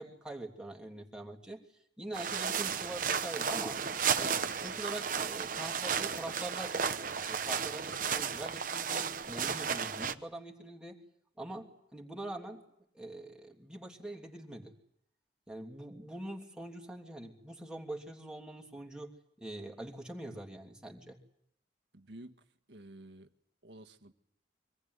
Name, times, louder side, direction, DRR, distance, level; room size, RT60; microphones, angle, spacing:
voice 1, 0.0-1.6 2.0-3.8 4.2-6.8 7.3-11.0 11.4-12.6 12.9-14.7 15.5-19.1 19.4-21.2, right 1 dB, 5° right, 1 dB, 3.0 m, -44 dB
sound 1, 2.1-10.1, right 6 dB, 50° right, 1.0 m, -33 dB
voice 2, 21.9-22.4 22.7-23.3 23.6-24.1, right 1 dB, 75° right, 6 dB, 1.7 m, -51 dB
25.5 x 19.0 x 9.6 m, 0.76 s
head